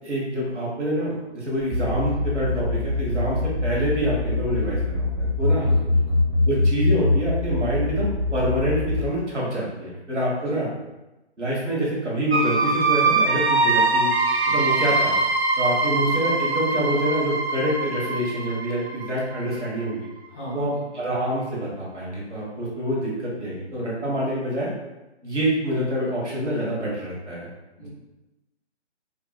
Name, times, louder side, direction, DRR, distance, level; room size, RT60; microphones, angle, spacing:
voice 1, 0.0-5.7 6.5-10.7 11.4-14.1 14.5-15.2 15.6-20.1 20.5-20.7 20.9-24.7 25.2-27.5, right 1 dB, 80° right, -5 dB, 1.4 m, -26 dB
sound 1, 1.7-9.0, left 2 dB, 35° right, 1.4 m, -22 dB
voice 2, 5.5-6.2 10.3-10.6 14.5-14.6 20.3-20.9 27.8-27.9, equal, 5° right, -13 dB, 0.6 m, -38 dB
sound 2, 12.3-19.9, right 3 dB, 65° right, 0.5 m, -23 dB
2.9 x 2.5 x 2.3 m, 1.0 s
figure-of-eight pair, 155°, 35 cm